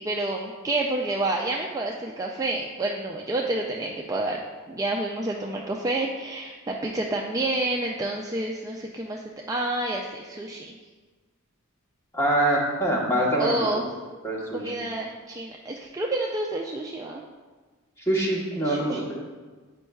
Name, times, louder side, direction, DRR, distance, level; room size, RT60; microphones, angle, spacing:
voice 1, 0.0-4.4 4.7-10.7 13.4-13.8 14.5-17.2 18.6-19.0, right 2 dB, 15° right, -1 dB, 0.3 m, -29 dB
voice 2, 12.1-13.6 14.2-14.7 18.1-19.0, right 1 dB, 15° left, -3 dB, 1.1 m, -24 dB
8.5 x 5.3 x 2.3 m, 1.4 s
head